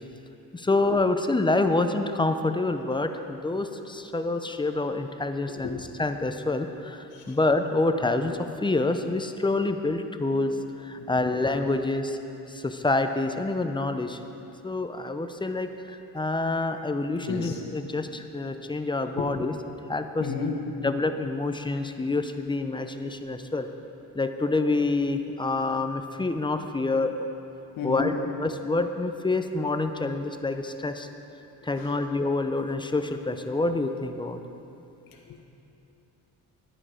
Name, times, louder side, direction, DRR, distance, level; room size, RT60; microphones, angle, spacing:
voice 1, 0.5-12.2 12.5-14.2 14.6-19.5 19.9-20.3 20.8-23.7 24.1-27.3 27.8-28.1 28.4-31.1 31.6-34.4, left 2 dB, 15° left, 7 dB, 0.5 m, -27 dB
voice 2, 11.0-11.3 17.2-17.6 19.2-19.3 20.2-20.6 27.8-28.1 31.8-31.9 35.3-35.4, left 6 dB, 65° left, 0 dB, 1.5 m, -32 dB
12.5 x 8.8 x 5.0 m, 2.8 s
cardioid pair, 110°, 38 cm